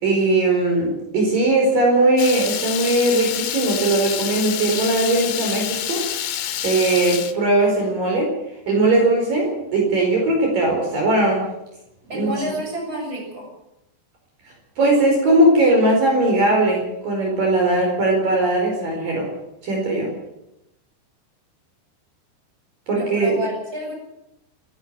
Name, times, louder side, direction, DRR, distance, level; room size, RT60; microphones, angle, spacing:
voice 1, 0.0-6.0 6.6-8.3 8.7-11.4 12.1-12.4 14.8-19.3 19.6-20.1 22.9-23.4, right 2 dB, 50° right, 0 dB, 6.3 m, -19 dB
Water tap faucet / Liquid, 2.2-7.3, left 11 dB, 75° left, 3.5 m, -27 dB
voice 2, 12.1-13.5 22.9-23.9, right 1 dB, 20° right, 1 dB, 7.4 m, -29 dB
28.0 x 12.0 x 7.7 m, 0.87 s
omnidirectional pair, 5.2 m